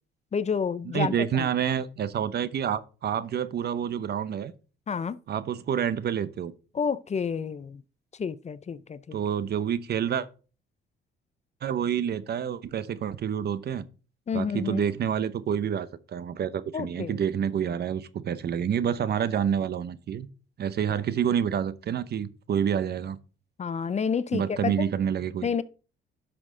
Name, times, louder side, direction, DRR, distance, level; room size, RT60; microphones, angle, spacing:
voice 1, 0.3-1.5 4.9-5.2 6.7-7.8 8.2-9.2 14.3-14.8 16.7-17.2 23.6-24.9 25.4-25.6, left 6 dB, 35° left, 0.5 m, -29 dB
voice 2, 0.9-4.5 5.3-6.5 9.1-10.3 11.6-13.8 14.3-20.3 20.6-23.2 24.3-25.5, right 8 dB, 55° right, 0.7 m, -28 dB
11.0 x 6.1 x 3.8 m
cardioid pair, 90°, 20 cm